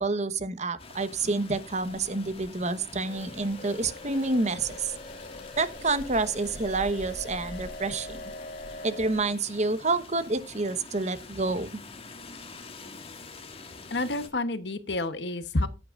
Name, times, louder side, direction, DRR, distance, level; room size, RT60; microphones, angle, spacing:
voice 1, 0.0-4.9 5.6-8.2 8.8-11.7, right 3 dB, 40° right, 1.2 m, -28 dB
Rain, 0.8-14.3, left 3 dB, 35° left, 2.0 m, -45 dB
sound 1, 3.0-9.3, left 1 dB, 50° left, 2.0 m, -43 dB
voice 2, 13.9-15.7, left 2 dB, 70° left, 1.2 m, -29 dB
15.0 x 9.8 x 2.6 m
head